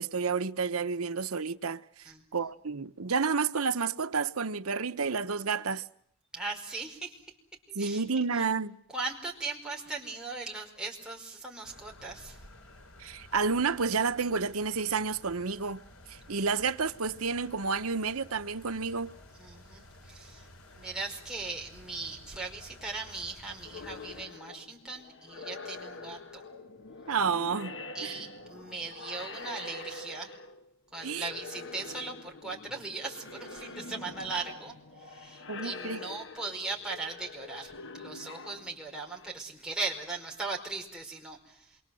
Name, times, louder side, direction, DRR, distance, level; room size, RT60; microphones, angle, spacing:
voice 1, 0.0-1.8 2.3-5.8 7.7-8.8 13.0-15.8 16.1-19.1 27.1-28.2 31.0-31.3 35.5-36.0, right 5 dB, 90° right, 1.0 m, -30 dB
voice 2, 6.3-7.2 7.8-8.0 8.3-8.5 8.9-12.4 19.4-20.5 20.8-26.4 27.9-30.3 30.9-34.7 35.0-41.7, right 3 dB, 5° right, 4.9 m, -39 dB
sound 1, 11.6-24.3, left 1 dB, 85° left, 4.0 m, -53 dB
sound 2, 23.6-30.7 30.9-39.3, left 3 dB, 60° left, 1.5 m, -45 dB
27.5 x 23.5 x 7.8 m
head